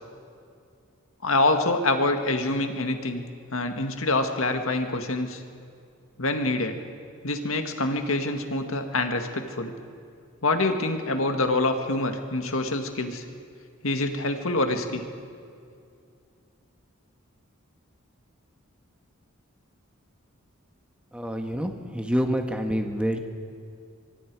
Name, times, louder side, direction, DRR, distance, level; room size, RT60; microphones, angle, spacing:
voice 1, 1.2-3.2 3.5-5.4 6.2-6.8 7.2-9.7 10.4-13.2 13.8-15.0, left 2 dB, 75° left, 6 dB, 1.9 m, -26 dB
voice 2, 21.1-23.2, equal, 5° right, 4 dB, 1.4 m, -27 dB
24.0 x 24.0 x 4.8 m, 2.4 s
head